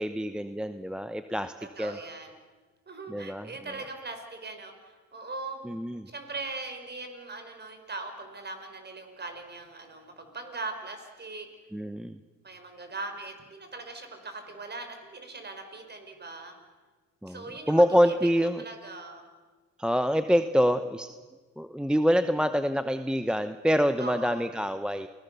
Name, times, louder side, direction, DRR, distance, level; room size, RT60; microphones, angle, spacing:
voice 1, 0.0-2.0 3.1-3.5 5.6-6.1 11.7-12.2 17.2-18.6 19.8-21.1 21.6-25.1, equal, 5° right, 10 dB, 0.8 m, -26 dB
voice 2, 1.6-2.3 2.9-5.6 6.1-11.5 12.4-16.5 17.3-18.1 18.6-19.2 24.0-24.5, right 3 dB, 35° right, 6 dB, 5.0 m, -40 dB
29.0 x 19.5 x 6.9 m, 1.4 s
cardioid pair, 90°, 30 cm